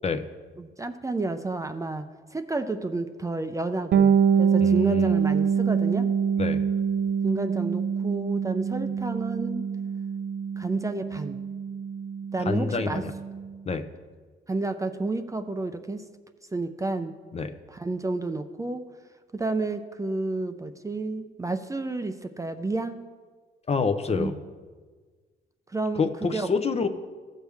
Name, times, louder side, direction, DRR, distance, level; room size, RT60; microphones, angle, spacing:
voice 1, 0.6-2.1 2.3-6.1 7.2-9.7 10.6-11.4 12.3-13.0 14.5-16.0 16.5-17.1 17.7-18.8 19.3-23.0 24.1-24.3 25.7-26.5, right 2 dB, 15° right, 8 dB, 0.5 m, -30 dB
Bass guitar, 3.9-13.5, right 7 dB, 65° right, 0.6 m, -25 dB
voice 2, 4.6-5.1 6.4-6.6 12.5-13.1 13.7-13.9 17.3-17.5 23.7-24.4 26.0-26.9, left 5 dB, 30° left, 8 dB, 0.7 m, -27 dB
15.0 x 6.3 x 3.4 m, 1.5 s
cardioid pair, 90°, 20 cm